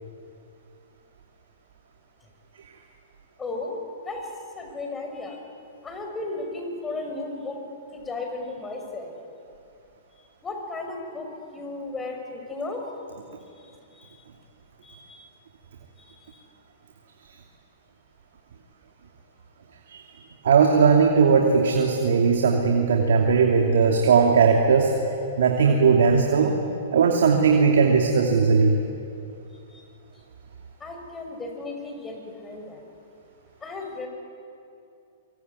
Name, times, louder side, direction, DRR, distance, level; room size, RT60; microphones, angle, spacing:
voice 1, 3.4-3.8 4.1-4.3 4.6-5.4 5.8-7.6 7.9-9.1 10.4-12.8 14.0-14.1 14.8-15.3 30.8-32.8 33.6-34.1, left 3 dB, 15° left, 3 dB, 5.6 m, -34 dB
voice 2, 20.4-24.9 25.4-26.5 26.9-28.8, right 5 dB, 75° right, 2 dB, 2.8 m, -18 dB
24.0 x 24.0 x 9.7 m, 2.6 s
hypercardioid pair, 130°, 0 cm